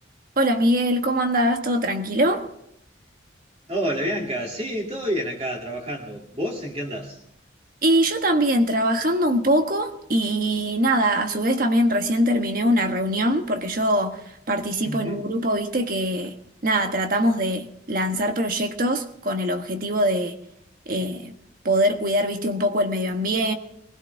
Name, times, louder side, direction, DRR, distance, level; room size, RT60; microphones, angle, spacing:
voice 1, 0.4-2.4 7.8-14.2 14.5-16.3 16.6-20.4 20.9-21.4 21.6-23.5, right 1 dB, 50° right, 1.3 m, -22 dB
voice 2, 3.7-7.2 14.8-15.2, equal, 30° right, 2.6 m, -29 dB
22.0 x 16.0 x 3.5 m
head